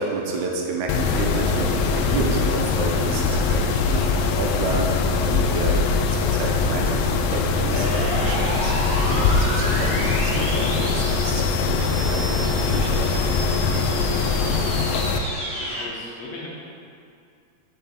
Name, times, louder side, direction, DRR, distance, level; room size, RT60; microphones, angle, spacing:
voice 1, 0.0-14.0, right 3 dB, 85° right, 0 dB, 2.2 m, -30 dB
Mechanisms, 0.9-15.2, left 4 dB, 90° left, 1.4 m, -22 dB
sound 1, 7.7-15.9, equal, 55° right, 2.2 m, -31 dB
voice 2, 15.6-16.5, left 3 dB, 65° left, -5 dB, 2.2 m, -38 dB
6.8 x 5.5 x 4.4 m, 2.4 s
omnidirectional pair, 3.4 m